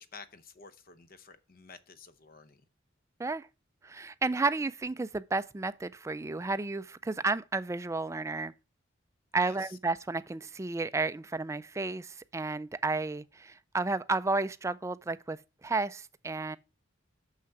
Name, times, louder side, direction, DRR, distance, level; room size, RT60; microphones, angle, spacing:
voice 1, 0.0-2.6 9.4-9.8, left 5 dB, 50° left, 0.8 m, -51 dB
voice 2, 3.8-8.5 9.3-16.6, right 3 dB, 15° right, 0.3 m, -32 dB
6.6 x 6.0 x 5.8 m
head